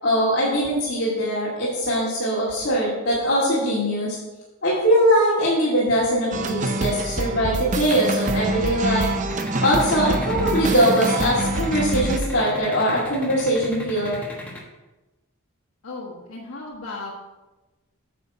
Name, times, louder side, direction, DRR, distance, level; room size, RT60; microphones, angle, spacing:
voice 1, 0.0-4.2 4.6-9.1 9.6-14.2, equal, 50° left, -7 dB, 2.2 m, -21 dB
sound 1, 6.3-12.2, right 2 dB, 35° right, 0.5 m, -25 dB
sound 2, 9.3-14.6, left 1 dB, 5° left, 1.1 m, -36 dB
voice 2, 15.8-17.1, left 3 dB, 80° left, -3 dB, 1.3 m, -35 dB
9.2 x 5.8 x 4.8 m, 1.1 s
head